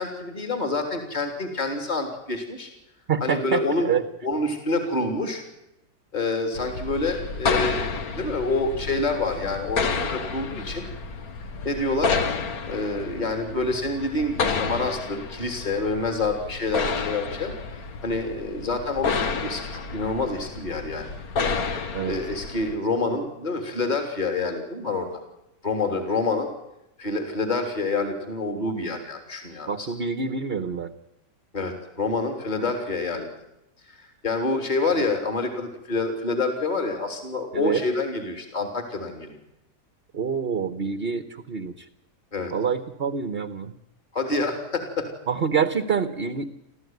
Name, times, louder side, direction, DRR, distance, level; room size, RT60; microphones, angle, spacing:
voice 1, 0.0-2.7 3.2-3.9 4.2-5.4 6.1-10.8 11.6-12.2 12.7-17.5 18.0-21.1 21.7-21.8 22.1-25.1 25.6-26.5 27.0-29.9 31.5-33.3 33.9-39.4 42.3-42.5 44.1-45.1, left 3 dB, 25° left, 5 dB, 3.5 m, -27 dB
voice 2, 3.1-4.0 21.9-22.2 29.7-30.9 37.5-37.8 40.1-41.8 42.5-43.7 45.3-46.5, right 6 dB, 40° right, 10 dB, 1.3 m, -26 dB
sound 1, 6.5-22.8, left 4 dB, 60° left, 1.9 m, -30 dB
26.5 x 15.5 x 9.4 m, 0.88 s
omnidirectional pair, 1.8 m